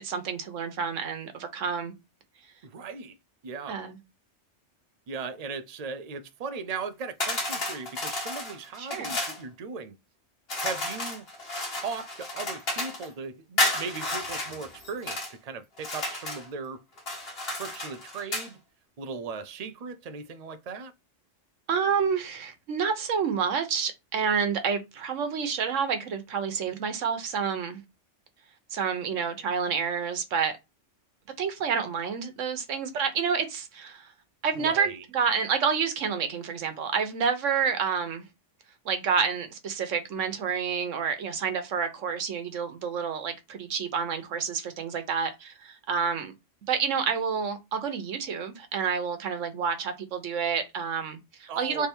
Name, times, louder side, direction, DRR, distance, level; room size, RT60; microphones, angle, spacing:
voice 1, 0.0-1.9 3.7-4.0 8.8-9.1 21.7-27.8 28.7-30.5 31.4-34.1 34.4-38.2 38.8-46.3 46.7-51.9, right 6 dB, 85° right, 1.3 m, -29 dB
voice 2, 2.6-3.2 3.4-3.8 5.1-10.0 10.5-11.2 11.8-16.8 17.5-18.6 19.0-20.9 34.5-35.0 51.5-51.9, right 4 dB, 50° right, 0.4 m, -38 dB
sound 1, 7.2-9.4 10.5-13.1 13.6-15.3 15.8-16.5 17.0-18.5, left 1 dB, 55° left, 1.6 m, -32 dB
3.4 x 3.4 x 4.4 m
omnidirectional pair, 1.3 m